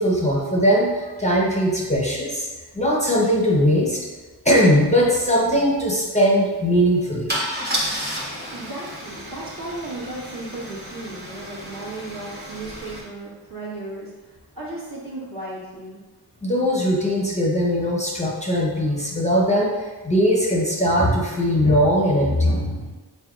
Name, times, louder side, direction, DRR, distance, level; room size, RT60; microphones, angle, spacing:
voice 1, 0.0-2.5 2.7-4.0 4.4-7.3 16.4-22.9, equal, 15° left, -4 dB, 0.7 m, -20 dB
Car / Engine starting / Idling, 4.7-4.8 5.0-5.3 7.3-13.0, equal, 25° right, 1.0 m, -31 dB
voice 2, 8.5-14.1 14.5-16.0, right 2 dB, 55° right, -7 dB, 1.4 m, -35 dB
4.1 x 3.3 x 2.4 m, 1.3 s
wide cardioid pair, 45°, 42 cm